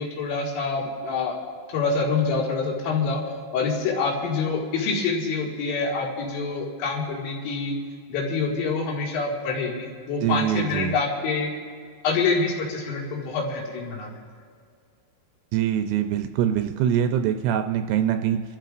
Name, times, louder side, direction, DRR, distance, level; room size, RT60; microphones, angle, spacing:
voice 1, 0.0-1.4 1.7-3.2 3.5-7.8 8.1-11.5 12.0-14.1, left 4 dB, 75° left, -2 dB, 4.5 m, -26 dB
voice 2, 10.2-10.9 15.5-18.4, right 9 dB, 85° right, 6 dB, 2.9 m, -23 dB
27.0 x 13.5 x 2.5 m, 2.1 s
omnidirectional pair, 5.9 m